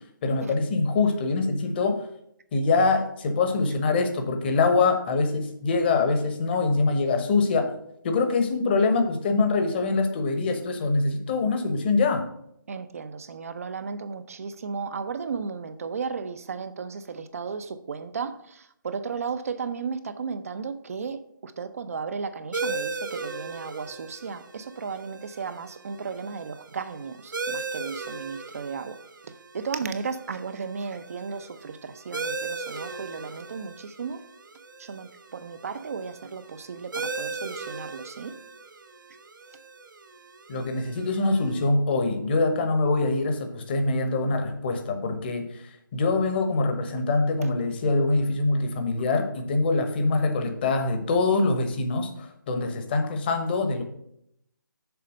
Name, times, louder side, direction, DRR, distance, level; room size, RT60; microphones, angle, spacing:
voice 1, 0.2-2.1 2.5-7.7 8.0-12.2 40.5-53.8, left 3 dB, 30° left, 1.0 m, -24 dB
voice 2, 12.7-29.0 29.5-34.2 34.8-38.3, right 5 dB, 45° right, 0.5 m, -35 dB
sound 1, 22.5-41.7, right 3 dB, 65° right, 0.8 m, -38 dB
6.8 x 4.2 x 6.4 m
figure-of-eight pair, 155°, 11 cm